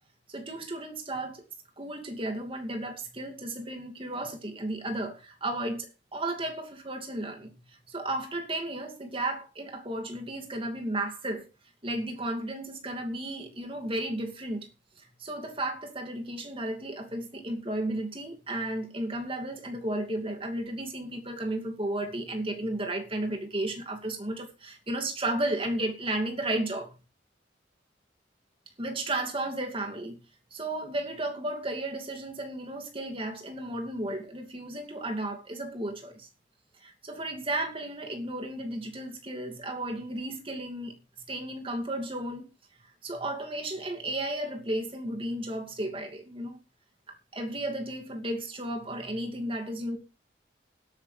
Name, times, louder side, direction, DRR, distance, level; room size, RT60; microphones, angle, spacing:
voice 1, 0.3-1.4 1.8-11.5 11.8-14.7 15.0-26.9 28.8-30.2 30.5-36.3 36.8-40.9 41.3-42.5 43.0-46.6 47.3-50.0, right 1 dB, 30° right, 2.6 m, -34 dB
20.0 x 8.9 x 3.4 m
head